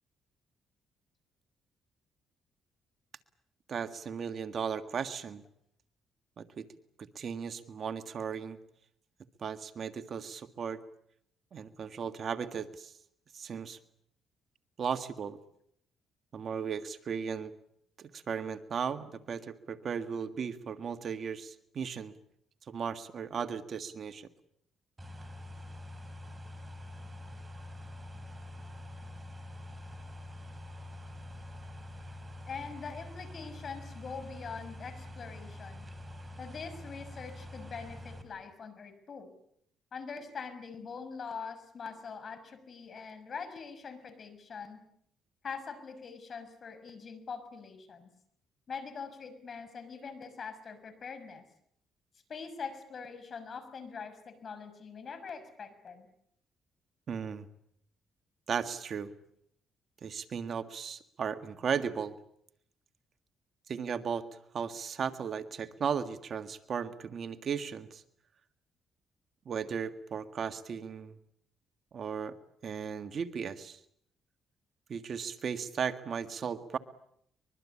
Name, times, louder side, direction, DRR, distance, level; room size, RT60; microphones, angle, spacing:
voice 1, 3.7-5.4 6.4-6.7 7.0-8.6 9.4-10.8 11.5-12.9 13.3-13.8 14.8-15.4 16.3-17.5 18.0-22.1 22.7-24.3 57.1-57.5 58.5-59.1 60.0-62.2 63.7-64.3 64.5-68.0 69.5-71.2 71.9-72.3 72.6-73.8 74.9-76.8, right 7 dB, 55° right, 9 dB, 1.7 m, -36 dB
sound 1, 25.0-38.2, left 1 dB, 20° right, 4.8 m, -46 dB
voice 2, 32.5-35.9 36.4-39.3 39.9-44.8 45.4-48.1 48.7-51.4 52.3-56.1, left 5 dB, 50° left, 11 dB, 6.2 m, -43 dB
24.0 x 22.5 x 8.5 m, 0.70 s
cardioid pair, 90°, 0 cm